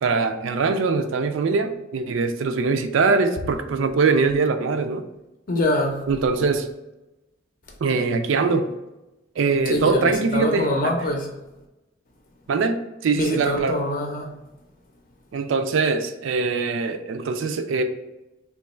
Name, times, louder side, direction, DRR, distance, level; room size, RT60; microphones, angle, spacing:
voice 1, 0.0-5.0 6.1-6.7 7.8-8.7 9.4-11.1 12.5-13.8 15.3-17.8, right 4 dB, 70° right, 0.3 m, -22 dB
voice 2, 5.5-6.0 9.7-10.0 10.3-11.3 13.2-14.3, left 1 dB, 45° left, 0.6 m, -24 dB
3.0 x 2.3 x 4.2 m
head